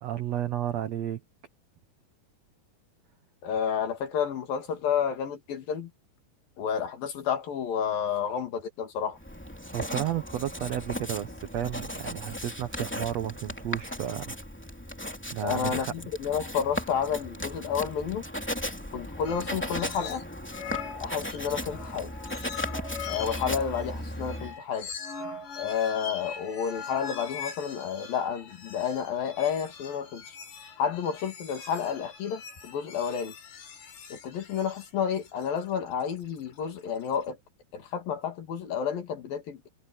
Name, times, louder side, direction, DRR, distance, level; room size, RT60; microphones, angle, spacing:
voice 1, 0.0-1.2 9.7-14.4 15.3-15.9, right 11 dB, 80° right, 1.5 m, -32 dB
voice 2, 3.4-5.9 6.6-9.2 15.4-18.2 18.9-20.2 21.0-22.1 23.1-24.9 25.6-30.4 30.8-33.3 34.1-37.4 37.7-39.7, left 7 dB, 65° left, 4.1 m, -30 dB
Writing, 9.2-24.6, equal, 5° left, 2.0 m, -37 dB
sound 1, 19.2-20.2 20.5-37.2, left 6 dB, 85° left, 6.5 m, -42 dB
omnidirectional pair, 4.4 m